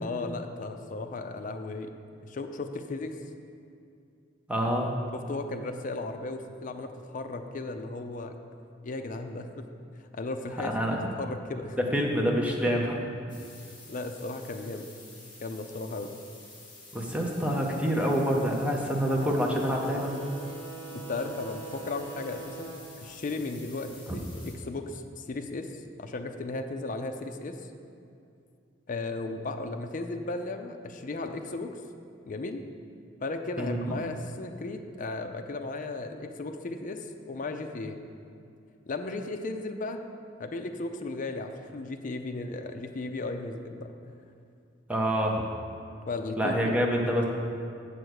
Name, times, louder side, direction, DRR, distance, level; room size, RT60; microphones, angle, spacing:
voice 1, 0.0-1.9 2.2-3.1 5.1-8.3 8.8-9.7 9.9-10.7 11.2-11.8 12.7-12.8 13.9-14.9 15.4-16.1 20.9-27.6 28.9-31.7 32.3-32.6 33.2-38.0 38.9-40.0 40.4-43.9 46.1-46.8, left 2 dB, 45° left, 6 dB, 0.5 m, -35 dB
voice 2, 4.5-5.0 10.6-11.0 11.9-13.0 16.9-20.1 24.1-24.2 33.6-33.9 44.9-45.4 46.4-47.2, equal, 5° right, -1 dB, 0.7 m, -27 dB
sound 1, 13.3-24.5, left 2 dB, 25° left, 1.8 m, -50 dB
sound 2, 19.1-24.3, right 4 dB, 70° right, 1.5 m, -44 dB
7.7 x 5.2 x 6.3 m, 2.5 s
head